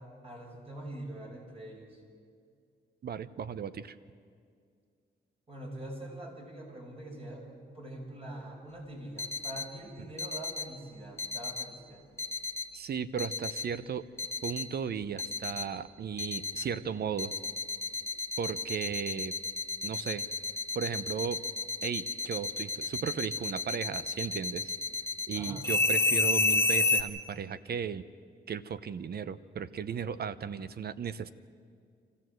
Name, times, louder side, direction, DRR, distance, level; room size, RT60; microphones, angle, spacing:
voice 1, 0.0-2.0 5.5-12.0 25.3-25.7, right 1 dB, 35° right, 0 dB, 5.6 m, -44 dB
voice 2, 3.0-3.9 12.7-14.1 14.4-17.3 18.4-19.3 19.8-20.2 20.7-21.4 21.8-24.7 25.3-28.0 28.5-31.3, right 7 dB, 60° right, 15 dB, 0.8 m, -35 dB
sound 1, 9.2-9.6 10.2-10.6 11.2-11.6 12.2-12.6 13.2-13.6 14.2-14.6 15.2-15.6 16.2-16.6 17.2-27.0, left 3 dB, 15° left, 1.3 m, -30 dB
25.5 x 15.0 x 7.8 m, 2.2 s
cardioid pair, 90°, 18 cm